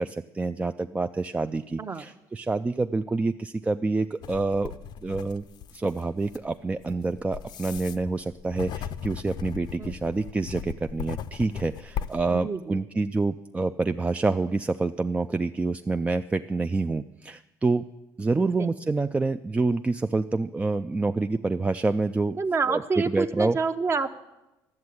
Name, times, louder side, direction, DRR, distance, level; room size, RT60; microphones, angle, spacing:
voice 1, 0.0-4.7 5.0-5.4 5.7-17.8 18.2-22.4 22.7-23.6, right 3 dB, 15° right, 8 dB, 0.4 m, -27 dB
sound 1, 4.2-12.3, left 9 dB, 65° left, 0.6 m, -37 dB
voice 2, 12.3-12.8 18.3-18.7 22.4-24.2, right 4 dB, 35° right, 9 dB, 0.9 m, -28 dB
12.0 x 7.6 x 9.6 m, 0.98 s
cardioid pair, 100°, 8 cm